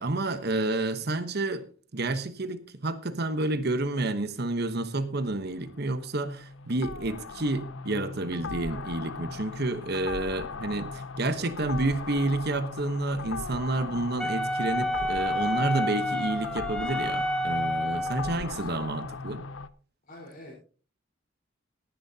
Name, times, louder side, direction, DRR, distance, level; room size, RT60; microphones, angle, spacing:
voice 1, 0.0-1.6 1.9-19.4, right 2 dB, 55° right, 11 dB, 1.1 m, -30 dB
sound 1, 5.2-19.7, left 4 dB, 70° left, 0.6 m, -38 dB
voice 2, 11.2-12.0 17.8-18.7 20.1-20.5, left 1 dB, 45° left, -6 dB, 4.4 m, -48 dB
Wind instrument woodwind instrument, 14.2-18.4, left 1 dB, 5° left, 0.7 m, -29 dB
18.0 x 10.5 x 2.8 m, 0.40 s
head